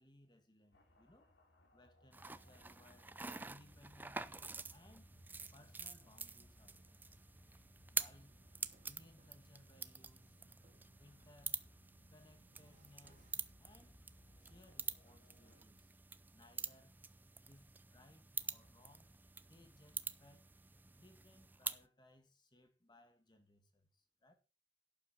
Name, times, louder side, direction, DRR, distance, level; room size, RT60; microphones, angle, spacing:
voice 1, 0.0-1.3 1.7-3.1 3.4-5.1 5.5-7.0 7.9-8.4 8.8-10.4 11.0-11.6 12.1-14.0 14.4-15.9 16.3-17.0 17.5-19.2 19.5-20.5 21.0-24.3, left 1 dB, 25° left, 2.0 m, -65 dB
sound 1, 0.7-15.6, equal, 85° left, 3.0 m, -67 dB
sound 2, 2.1-21.8, right 4 dB, 10° right, 0.4 m, -47 dB
sound 3, 8.0-15.8, right 2 dB, 40° right, 2.3 m, -76 dB
12.0 x 8.4 x 4.3 m
head